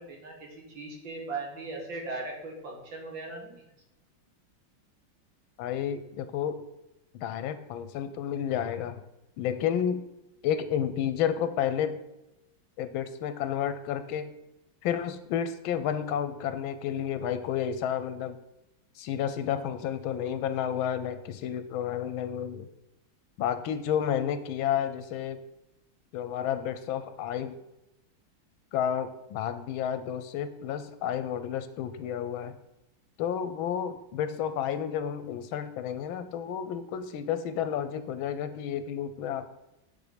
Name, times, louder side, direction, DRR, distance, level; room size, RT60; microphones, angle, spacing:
voice 1, 0.0-3.6, right 3 dB, 70° right, -1 dB, 2.2 m, -38 dB
voice 2, 5.6-6.6 7.2-9.0 9.4-10.0 10.4-12.0 12.8-14.3 14.8-18.4 19.0-22.7 23.4-25.4 26.1-27.6 28.7-32.6 33.2-39.6, left 9 dB, 85° left, 11 dB, 1.4 m, -31 dB
9.3 x 4.1 x 5.0 m, 0.91 s
omnidirectional pair, 2.2 m